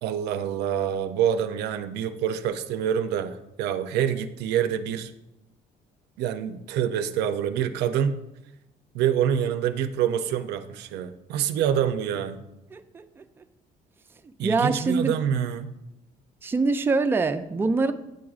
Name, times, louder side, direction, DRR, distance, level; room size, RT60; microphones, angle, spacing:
voice 1, 0.0-5.1 6.2-8.2 8.9-12.4 14.4-15.7, right 9 dB, 80° right, 9 dB, 0.4 m, -26 dB
voice 2, 12.7-13.2 14.4-15.2 16.4-17.9, right 3 dB, 15° right, 8 dB, 0.3 m, -24 dB
9.2 x 4.8 x 2.4 m, 0.91 s
cardioid pair, 110°, 17 cm